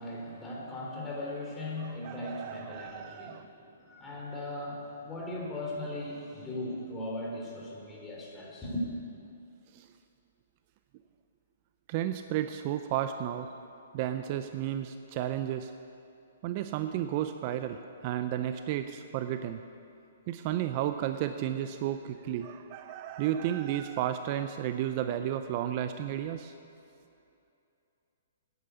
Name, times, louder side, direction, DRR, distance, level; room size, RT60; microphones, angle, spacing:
voice 1, 0.0-3.4 3.8-8.8, left 1 dB, 15° left, -4 dB, 3.5 m, -38 dB
voice 2, 1.8-3.4 9.7-9.9 11.9-13.5 13.9-15.7 16.4-19.6 20.3-26.5, right 11 dB, 40° right, 9 dB, 0.5 m, -33 dB
9.8 x 8.9 x 8.2 m, 2.7 s
hypercardioid pair, 135°, 0 cm